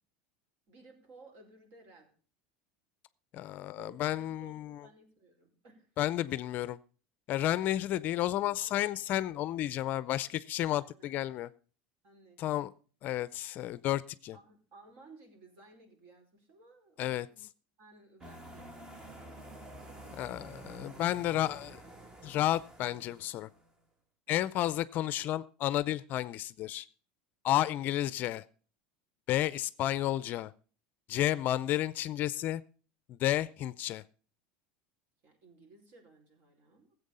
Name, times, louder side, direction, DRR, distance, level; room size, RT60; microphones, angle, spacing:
voice 1, 0.7-2.1 3.8-5.9 6.2-6.4 8.6-8.9 10.3-10.5 10.8-11.1 12.0-12.6 13.0-13.1 14.3-17.4 17.8-19.6 20.9-21.3 24.3-24.4 27.5-27.8 35.2-37.0, right 2 dB, 50° right, 3 dB, 4.7 m, -58 dB
voice 2, 3.3-4.8 6.0-6.8 7.3-11.5 12.4-12.7 13.0-14.4 17.0-17.3 20.1-21.8 22.2-23.5 24.3-26.8 27.4-28.4 29.3-30.5 31.1-32.6 33.1-34.0, left 13 dB, 40° left, 17 dB, 0.5 m, -32 dB
sound 1, 18.2-23.7, right 1 dB, 15° right, 1.5 m, -50 dB
15.5 x 8.1 x 5.5 m, 0.40 s
supercardioid pair, 145°, 5 cm